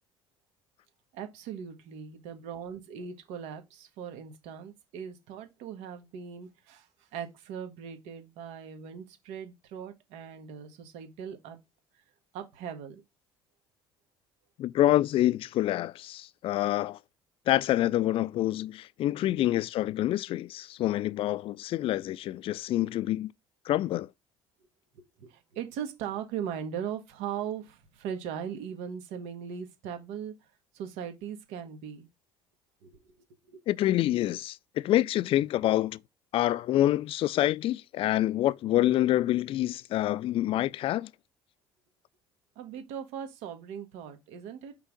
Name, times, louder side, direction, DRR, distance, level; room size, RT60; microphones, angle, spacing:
voice 1, 1.1-6.9 7.1-11.6 12.3-13.0 24.9-30.3 30.7-32.1 32.8-33.0 33.5-33.6 42.5-44.7, right 8 dB, 70° right, 1.5 m, -39 dB
voice 2, 14.6-17.0 17.5-23.3 23.7-24.1 33.7-36.0 36.3-41.1, left 14 dB, 50° left, 0.3 m, -27 dB
5.6 x 3.7 x 5.0 m
hypercardioid pair, 60°, 12 cm